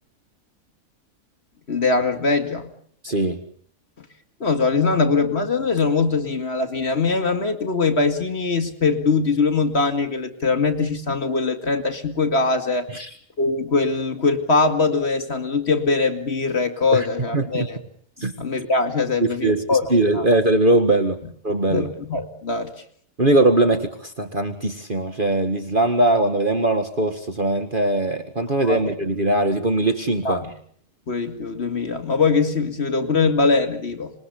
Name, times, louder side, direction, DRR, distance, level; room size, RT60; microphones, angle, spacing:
voice 1, 1.7-2.7 4.0-4.1 4.4-12.9 13.4-17.8 18.4-20.3 21.7-22.8 28.6-28.8 30.2-30.5 31.1-34.1, left 4 dB, 45° left, 8 dB, 2.6 m, -22 dB
voice 2, 3.0-3.4 12.9-13.1 16.9-17.1 17.3-17.7 18.2-18.3 19.2-21.2 21.4-21.9 23.2-30.4, right 2 dB, 35° right, 7 dB, 1.9 m, -20 dB
26.5 x 21.0 x 8.5 m, 0.62 s
omnidirectional pair, 1.5 m